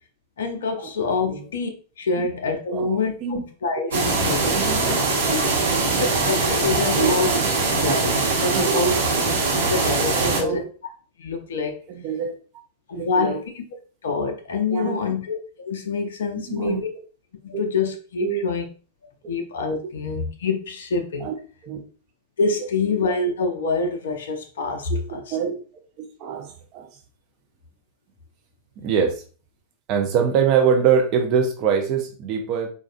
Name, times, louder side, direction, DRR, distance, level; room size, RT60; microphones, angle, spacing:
voice 1, 0.4-1.7 2.0-4.4 4.9-5.0 5.3-5.5 5.9-7.4 7.6-8.9 9.5-10.6 11.2-11.8 12.9-13.6 14.0-16.9 17.4-18.7 19.3-21.3 22.4-25.4, left 4 dB, 65° left, 5 dB, 0.5 m, -26 dB
voice 2, 2.7-3.4 4.5-4.8 5.6-6.0 7.0-7.1 8.5-9.0 10.1-10.7 11.9-12.4 12.9-13.4 14.7-15.0 16.5-16.8 18.2-18.4 21.2-21.3 21.6-21.8 24.9-25.5 26.0-26.9 28.8-29.2 29.9-32.7, right 7 dB, 40° right, 2 dB, 0.5 m, -24 dB
sound 1, 3.9-10.4, right 3 dB, 65° right, 1.1 m, -22 dB
4.0 x 2.4 x 2.4 m, 0.38 s
figure-of-eight pair, 90°, 0 cm